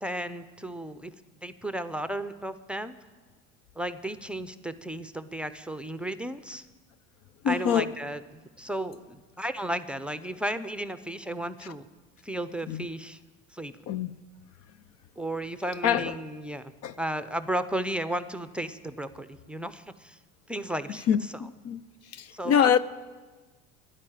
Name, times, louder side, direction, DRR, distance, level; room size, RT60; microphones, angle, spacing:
voice 1, 0.0-1.1 1.4-2.9 3.7-6.7 7.5-8.2 8.6-11.9 12.2-13.2 13.5-13.8 15.2-16.7 17.0-20.2 20.5-21.0 22.3-22.8, right 1 dB, 5° right, 0.6 m, -34 dB
voice 2, 7.4-7.9 12.7-12.9 13.9-14.1 15.8-16.1 16.8-16.9 21.1-21.8 22.1-22.8, left 9 dB, 50° left, 0.6 m, -25 dB
12.0 x 11.0 x 9.0 m
supercardioid pair, 90°, 32 cm